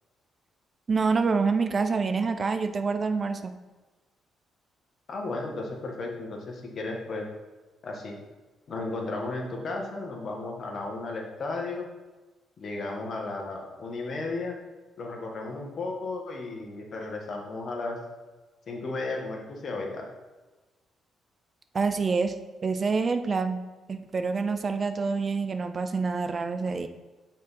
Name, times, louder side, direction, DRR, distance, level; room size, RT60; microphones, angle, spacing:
voice 1, 0.9-3.5 21.7-22.3 22.6-23.6 23.9-26.9, right 4 dB, 40° right, 8 dB, 0.5 m, -26 dB
voice 2, 5.1-7.3 7.8-8.2 8.7-11.9 12.6-14.6 15.0-18.0 18.7-20.0, left 3 dB, 50° left, 1 dB, 1.5 m, -34 dB
6.1 x 4.4 x 5.7 m, 1.2 s
cardioid pair, 90°, 0 cm